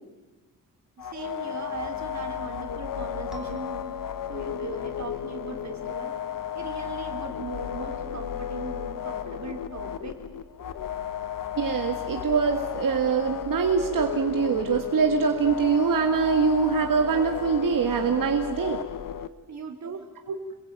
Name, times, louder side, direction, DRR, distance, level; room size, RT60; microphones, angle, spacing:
sound 1, 1.0-19.3, left 9 dB, 85° left, 1.2 m, -34 dB
voice 1, 1.0-3.8 4.3-6.1 6.5-10.2 19.5-20.1, right 5 dB, 60° right, 4 dB, 3.9 m, -39 dB
sound 2, 3.3-7.7, left 1 dB, ahead, 3.3 m, -51 dB
voice 2, 11.6-18.8 20.3-20.4, right 6 dB, 85° right, 4 dB, 1.9 m, -24 dB
27.5 x 21.5 x 9.0 m, 1.1 s
wide cardioid pair, 170°, 32 cm